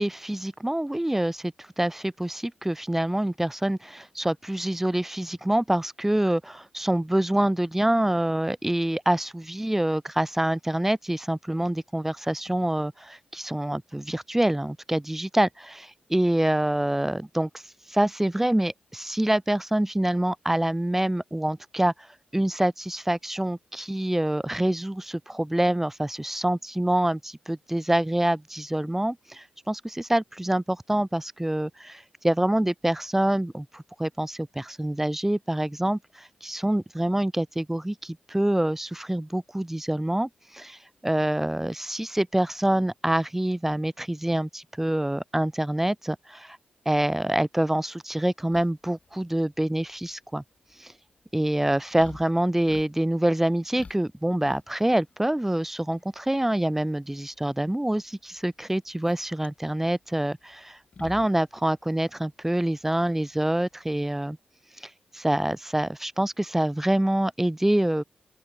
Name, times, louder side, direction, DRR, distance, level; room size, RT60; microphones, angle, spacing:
voice 1, 0.0-17.6 17.9-21.9 22.3-46.6 46.9-50.4 50.8-50.9 51.3-60.6 61.0-64.4 64.8-68.0, right 1 dB, 10° right, 0.7 m, -26 dB
sound 1, 48.5-64.1, left 4 dB, 45° left, 7.1 m, -51 dB
open air
cardioid pair, 65°, 3 cm